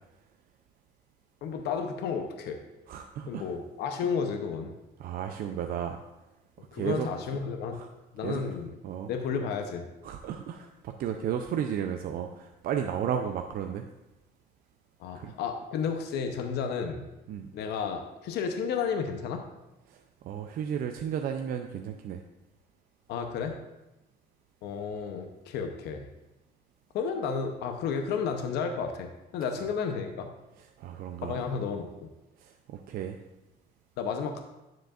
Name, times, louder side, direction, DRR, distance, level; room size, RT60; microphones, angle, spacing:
voice 1, 1.4-2.6 3.3-4.7 6.7-7.7 8.1-8.8 9.1-9.9 15.0-17.1 17.5-19.4 23.1-23.5 24.6-26.1 26.9-30.3 31.2-32.1 34.0-34.4, left 6 dB, 75° left, 5 dB, 0.8 m, -32 dB
voice 2, 2.9-3.5 5.0-6.0 6.7-7.1 7.7-7.9 8.2-8.4 8.8-9.1 10.0-13.9 15.1-15.3 17.3-17.5 19.9-22.2 30.8-31.4 32.4-33.2, right 8 dB, 60° right, 5 dB, 0.5 m, -33 dB
9.2 x 7.5 x 2.5 m, 0.98 s
cardioid pair, 110°, 17 cm